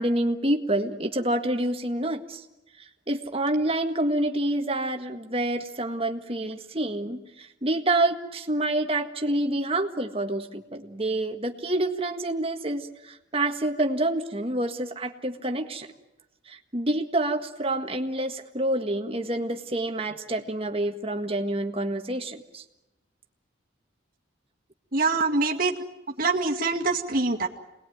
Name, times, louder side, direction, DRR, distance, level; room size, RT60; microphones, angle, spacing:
voice 1, 0.0-2.4 3.1-15.9 16.5-22.6, right 1 dB, 30° right, 4 dB, 1.7 m, -27 dB
voice 2, 24.9-25.7 26.2-27.5, right 3 dB, 45° right, 0 dB, 2.1 m, -24 dB
27.5 x 20.0 x 9.4 m, 0.97 s
head